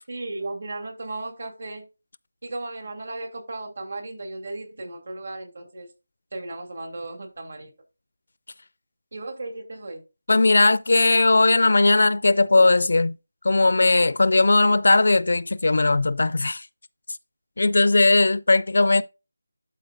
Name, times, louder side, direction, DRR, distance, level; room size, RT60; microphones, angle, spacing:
voice 1, 0.1-1.9 2.4-5.9 6.3-7.7 9.1-10.0, right 2 dB, 50° right, 2.6 m, -35 dB
voice 2, 10.3-13.2 13.4-16.7 17.6-19.0, left 2 dB, 60° left, 0.4 m, -18 dB
12.0 x 4.5 x 2.5 m
figure-of-eight pair, 175°, 0 cm